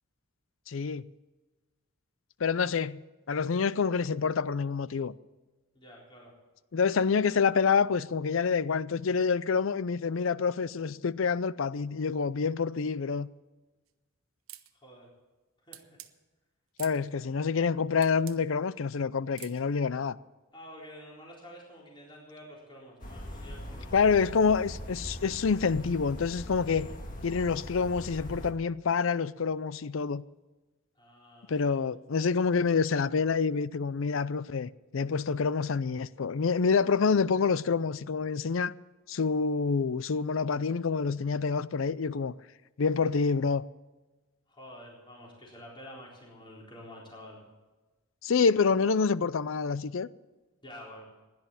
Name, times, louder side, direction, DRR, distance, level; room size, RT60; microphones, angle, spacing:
voice 1, 0.7-1.1 2.4-3.0 3.3-5.1 6.7-13.3 16.8-20.2 23.9-26.9 27.2-30.2 31.5-38.7 39.1-42.3 42.8-43.6 48.2-50.1, left 5 dB, 65° left, 0.5 m, -27 dB
voice 2, 5.7-6.4 14.7-15.1 15.6-16.0 20.5-24.3 31.0-31.8 44.5-47.4 50.6-51.0, equal, 25° left, 4.0 m, -49 dB
sound 1, 14.5-14.7 15.7-16.1 16.8-17.0 18.0-18.4 19.4-19.6, right 14 dB, 75° right, 0.9 m, -46 dB
sound 2, 23.0-28.5, equal, 40° left, 1.9 m, -41 dB
16.5 x 10.5 x 7.2 m
head